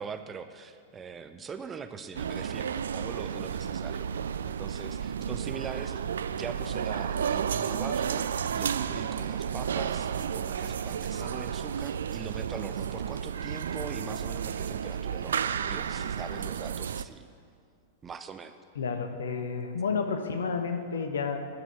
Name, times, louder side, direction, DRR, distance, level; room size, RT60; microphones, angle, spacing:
voice 1, 0.0-4.1 4.4-8.3 8.5-17.3 18.0-18.5, right 6 dB, 20° right, 9 dB, 0.6 m, -42 dB
sound 1, 2.1-17.0, right 8 dB, 65° right, 0.3 m, -32 dB
voice 2, 18.8-21.5, left 5 dB, 65° left, 6 dB, 1.0 m, -31 dB
10.5 x 6.2 x 8.9 m, 2.2 s
figure-of-eight pair, 95°, 0 cm